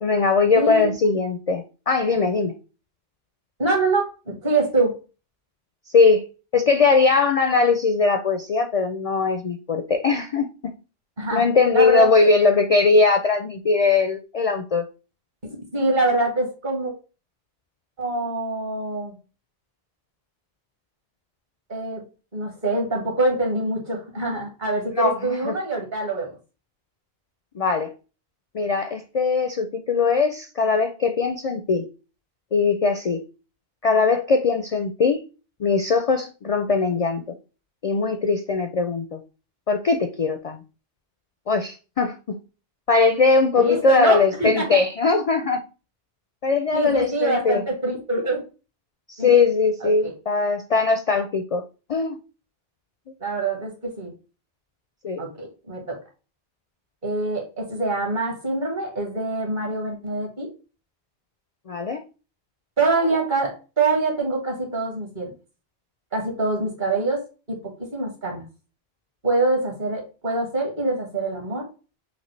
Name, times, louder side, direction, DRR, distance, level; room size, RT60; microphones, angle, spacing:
voice 1, 0.0-2.5 5.9-6.2 6.5-10.7 11.3-14.9 25.0-25.6 27.5-27.9 28.5-31.8 32.5-33.2 33.8-35.2 35.6-37.2 37.8-39.2 39.7-40.6 41.5-42.4 42.9-45.6 46.4-47.6 49.1-51.6 51.9-52.2 55.0-55.2 61.7-62.0, left 4 dB, 55° left, 7 dB, 0.4 m, -20 dB
voice 2, 0.5-0.9 3.6-4.9 11.2-11.4 11.7-12.3 15.4-16.9 18.0-19.1 21.7-22.0 22.3-26.3 43.6-44.8 46.7-48.4 49.2-49.4 49.8-50.1 53.2-54.1 55.2-56.0 57.0-60.5 62.8-65.3 66.1-67.2 67.5-68.4 69.2-71.7, right 2 dB, 50° right, 1 dB, 1.7 m, -25 dB
5.8 x 2.6 x 3.2 m, 0.33 s
omnidirectional pair, 1.0 m